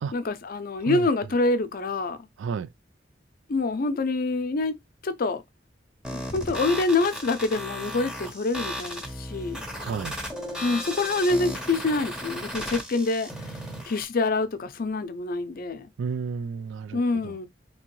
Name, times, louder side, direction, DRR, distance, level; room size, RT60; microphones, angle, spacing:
voice 1, 0.1-2.2 3.5-4.8 5.0-5.4 6.1-9.6 10.6-13.3 13.8-15.9 16.9-17.5, left 3 dB, 50° left, 0.5 m, -26 dB
sound 1, 6.0-14.0, equal, 5° right, 0.7 m, -35 dB
voice 2, 9.8-10.2 16.0-17.0, right 5 dB, 90° right, 0.4 m, -31 dB
3.6 x 2.9 x 3.0 m
head